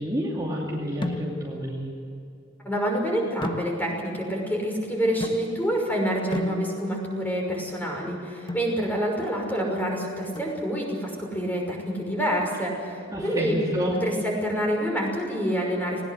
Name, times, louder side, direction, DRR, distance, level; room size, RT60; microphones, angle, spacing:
voice 1, 0.0-2.0 13.1-14.0, equal, 20° right, -4 dB, 2.5 m, -29 dB
sound 1, 1.0-1.6 3.4-4.1 5.2-5.8 6.3-7.1 8.5-8.8 10.3-11.0, left 2 dB, 25° left, 1.4 m, -34 dB
voice 2, 2.6-13.6 14.0-16.0, equal, 10° left, 0 dB, 5.8 m, -27 dB
20.0 x 19.0 x 7.9 m, 2.6 s
head